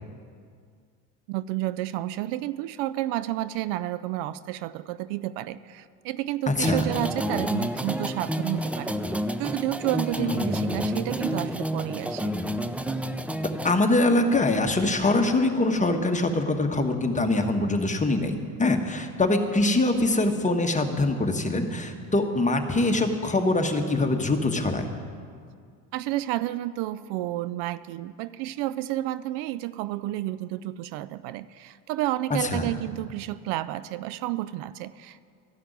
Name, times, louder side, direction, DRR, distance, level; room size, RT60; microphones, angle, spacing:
voice 1, 1.3-9.0 9.4-12.3 25.9-35.2, right 15 dB, 70° right, 16 dB, 0.5 m, -31 dB
voice 2, 6.5-6.8 10.2-10.6 13.6-24.9 32.4-32.7, left 2 dB, 15° left, 5 dB, 1.2 m, -24 dB
sound 1, 6.6-13.7, equal, 5° right, 0.5 m, -29 dB
13.5 x 5.9 x 9.3 m, 2.2 s
hypercardioid pair, 75°, 43 cm